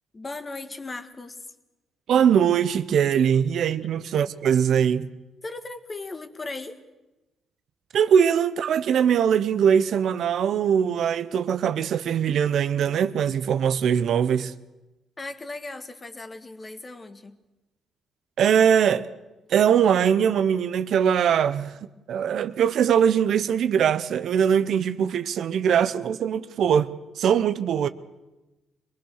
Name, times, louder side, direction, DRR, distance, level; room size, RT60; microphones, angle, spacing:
voice 1, 0.1-1.5 5.4-6.8 15.2-17.4, left 3 dB, 25° left, 1.6 m, -37 dB
voice 2, 2.1-5.1 7.9-14.5 18.4-19.1 19.5-21.8 22.1-26.9 27.2-27.9, right 8 dB, 70° right, 0.8 m, -21 dB
24.0 x 19.5 x 6.5 m
cardioid pair, 90°, 0 cm